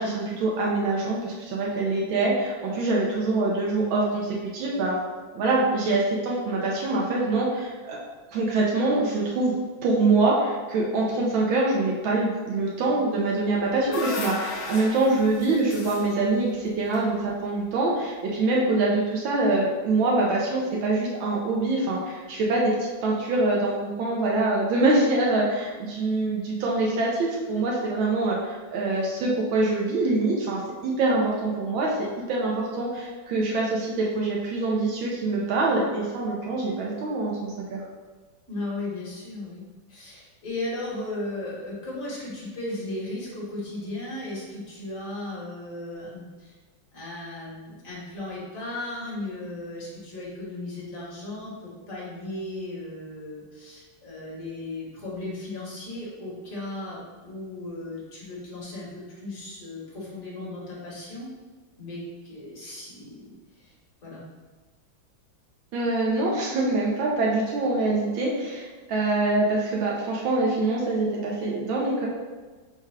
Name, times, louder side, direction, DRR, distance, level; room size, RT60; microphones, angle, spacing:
voice 1, 0.0-5.0 5.3-8.0 8.3-9.5 9.8-22.7 23.0-31.9 32.3-37.8 62.6-62.7 65.7-72.1, right 2 dB, 75° right, -3 dB, 1.5 m, -24 dB
sound 1, 13.4-17.7, left 3 dB, 80° left, 1.4 m, -37 dB
voice 2, 38.5-39.6 39.9-46.5 46.9-61.3 61.8-63.7 64.0-64.2, left 2 dB, 45° left, -7 dB, 1.6 m, -36 dB
4.3 x 2.4 x 4.7 m, 1.3 s
omnidirectional pair, 2.2 m